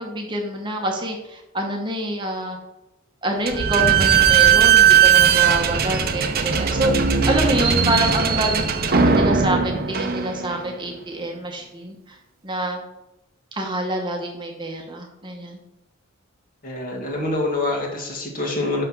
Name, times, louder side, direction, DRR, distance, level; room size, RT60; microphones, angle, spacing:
voice 1, 0.0-2.6 3.2-6.9 7.3-12.2 12.4-12.8 13.5-15.6, right 1 dB, 20° right, 2 dB, 0.9 m, -26 dB
Slam / Squeak, 3.5-10.7, right 7 dB, 45° right, 0.6 m, -18 dB
voice 2, 16.6-18.8, left 2 dB, 40° left, -1 dB, 1.7 m, -25 dB
5.8 x 5.7 x 5.9 m, 0.92 s
head